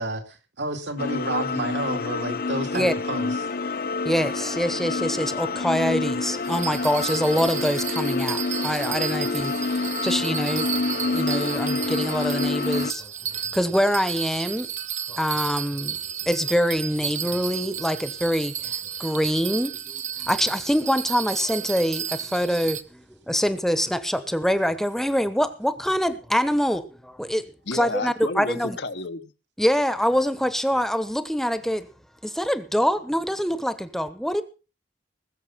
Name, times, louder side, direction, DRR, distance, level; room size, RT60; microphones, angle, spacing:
voice 1, 0.0-3.3, right 2 dB, 75° right, 2.4 m, -30 dB
sound 1, 1.0-12.9, left 3 dB, 55° left, 0.7 m, -27 dB
voice 2, 4.0-14.7 15.1-28.8 29.6-31.9 32.2-34.4, equal, ahead, 1.0 m, -25 dB
Bell, 6.4-22.8, right 9 dB, 40° right, 0.9 m, -33 dB
voice 3, 27.7-29.3, left 3 dB, 70° left, 1.2 m, -31 dB
20.5 x 7.3 x 5.8 m
head